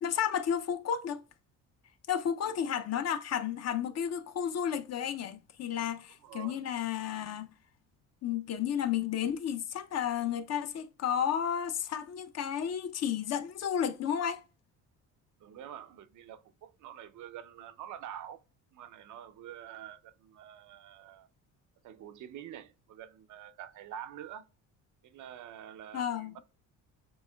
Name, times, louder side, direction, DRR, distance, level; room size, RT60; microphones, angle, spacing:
voice 1, 0.0-1.2 2.1-7.5 8.2-14.4 25.9-26.4, left 9 dB, 50° left, 0.6 m, -32 dB
voice 2, 6.2-6.6 15.4-18.4 18.7-21.3 21.8-24.5 25.0-26.4, right 10 dB, 60° right, 0.5 m, -47 dB
7.5 x 2.9 x 2.2 m
cardioid pair, 110°, 34 cm